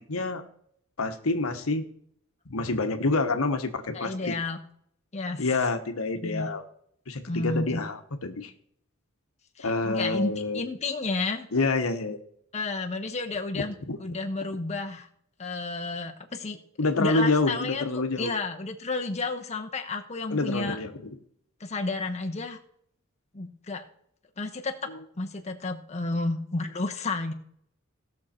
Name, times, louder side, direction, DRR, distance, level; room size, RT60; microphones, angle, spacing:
voice 1, 0.1-0.4 1.0-1.9 2.5-4.4 5.4-6.6 7.1-8.5 9.6-10.6 11.5-12.2 13.5-14.0 16.8-18.3 20.3-21.1, left 3 dB, 75° left, 7 dB, 1.1 m, -27 dB
voice 2, 3.9-4.6 5.1-5.4 6.2-6.5 7.3-7.8 9.6-11.5 12.5-13.7 14.0-15.1 15.4-16.6 16.9-20.8 21.6-22.6 23.3-23.8 24.4-24.8 25.2-27.3, left 3 dB, 30° left, 3 dB, 1.0 m, -31 dB
17.0 x 6.4 x 4.3 m, 0.67 s
head